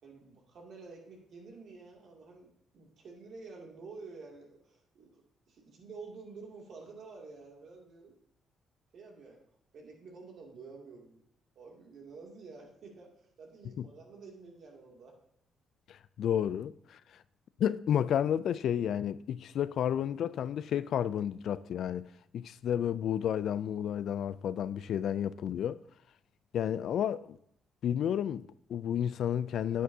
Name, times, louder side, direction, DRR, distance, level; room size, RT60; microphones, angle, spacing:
voice 1, 0.0-2.5 2.7-5.2 5.5-8.1 8.9-9.4 9.7-11.2 11.6-15.2, right 4 dB, 65° right, 2.5 m, -50 dB
voice 2, 15.9-17.0 17.6-25.8 26.5-27.4 27.8-29.8, left 9 dB, 70° left, 0.3 m, -31 dB
9.9 x 9.4 x 2.7 m
cardioid pair, 90°, 0 cm